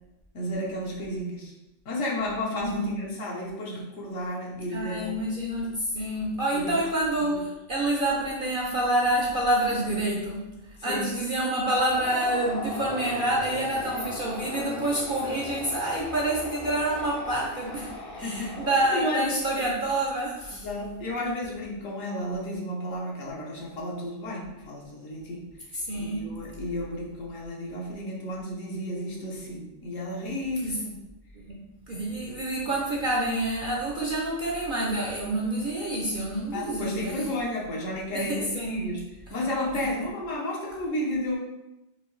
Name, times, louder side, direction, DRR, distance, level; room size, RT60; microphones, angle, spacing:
voice 1, 0.3-1.5 1.8-5.1 6.5-6.7 10.8-11.1 14.0-14.1 18.2-18.6 18.9-19.3 20.6-25.5 26.0-31.0 32.6-32.7 36.5-39.0 39.3-41.4, left 1 dB, 70° left, -3 dB, 1.3 m, -32 dB
voice 2, 2.6-3.2 4.7-20.7 25.7-26.4 30.6-30.8 31.3-37.3 38.1-38.9 39.3-39.4 39.7-39.9, right 1 dB, 55° right, -3 dB, 0.6 m, -28 dB
sound 1, 11.9-19.0, left 2 dB, 30° left, 0.4 m, -38 dB
4.7 x 2.6 x 3.1 m, 0.95 s
omnidirectional pair, 1.4 m